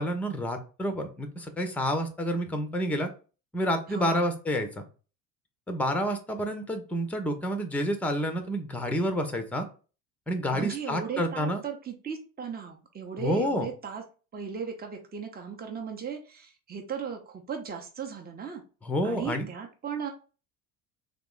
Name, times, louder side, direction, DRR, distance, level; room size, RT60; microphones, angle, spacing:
voice 1, 0.0-3.1 3.5-4.8 5.7-9.6 10.3-11.6 13.2-13.7 18.8-19.5, equal, 5° left, 7 dB, 0.8 m, -29 dB
voice 2, 3.9-4.3 10.5-14.0 14.3-18.6 19.0-20.1, right 7 dB, 20° right, 3 dB, 0.9 m, -36 dB
3.5 x 3.0 x 3.7 m, 0.35 s
figure-of-eight pair, 60°, 47 cm